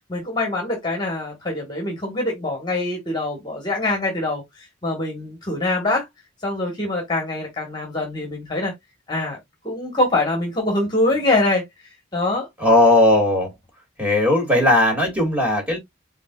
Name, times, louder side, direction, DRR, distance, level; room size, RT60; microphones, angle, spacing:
voice 1, 0.1-6.1 6.4-8.7 9.1-9.4 9.6-11.6 12.1-12.5, left 2 dB, 20° left, 1.4 m, -24 dB
voice 2, 12.6-13.5 14.0-15.8, left 1 dB, 5° right, 2.3 m, -17 dB
5.1 x 3.9 x 2.4 m
head